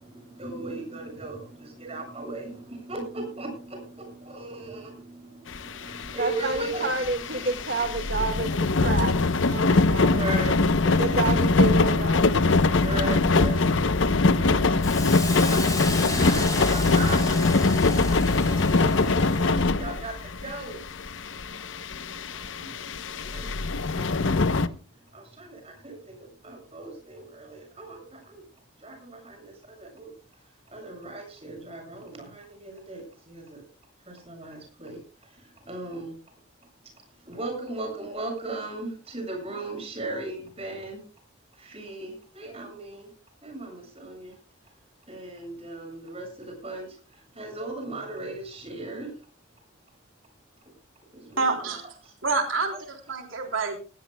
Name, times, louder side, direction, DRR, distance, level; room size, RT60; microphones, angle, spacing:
voice 1, 0.0-6.9 7.4-7.6 8.1-8.2 8.6-11.2 12.3-21.3 22.2-24.4 24.9-28.4 28.8-30.1 30.7-33.6 34.0-36.1 37.2-41.0 41.5-43.1 43.4-44.4 45.1-49.2 51.1-52.1, right 2 dB, 30° right, 3 dB, 7.3 m, -38 dB
sound 1, 5.5-24.7, left 3 dB, 70° left, 0.8 m, -23 dB
voice 2, 6.2-9.2 9.4-10.2 11.0-12.3, right 3 dB, 55° right, 5 dB, 1.8 m, -29 dB
Hiss, 14.8-19.5, left 3 dB, 15° left, 4.8 m, -34 dB
voice 3, 51.4-51.8 52.2-53.8, right 4 dB, 80° right, 2 dB, 3.5 m, -27 dB
19.0 x 17.5 x 2.2 m, 0.33 s
head